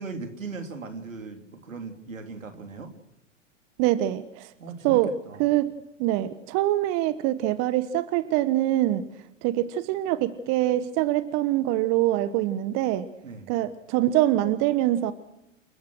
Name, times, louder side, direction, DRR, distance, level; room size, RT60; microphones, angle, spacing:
voice 1, 0.0-2.9 4.6-5.5 13.2-13.5, right 4 dB, 85° right, 6 dB, 3.3 m, -38 dB
voice 2, 3.8-4.5 4.8-5.1 5.4-5.7 6.0-9.0 9.4-13.1 13.5-15.1, right 14 dB, 40° right, 14 dB, 1.3 m, -24 dB
29.0 x 14.5 x 6.2 m, 0.88 s
hypercardioid pair, 100°, 38 cm